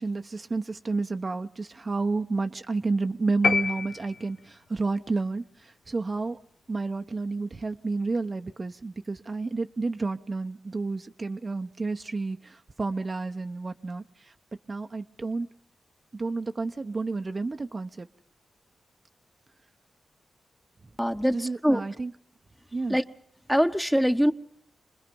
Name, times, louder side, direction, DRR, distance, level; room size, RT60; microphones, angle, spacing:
voice 1, 0.0-6.4 6.7-14.3 14.7-15.5 16.1-18.1 21.3-22.1 22.7-23.0, right 3 dB, 45° right, 0.8 m, -30 dB
sound 1, 3.4-4.7, left 5 dB, 70° left, 0.9 m, -27 dB
voice 2, 21.0-21.8 22.9-23.0 23.5-24.3, equal, ahead, 1.1 m, -23 dB
27.5 x 20.5 x 5.3 m
supercardioid pair, 45°, 0 cm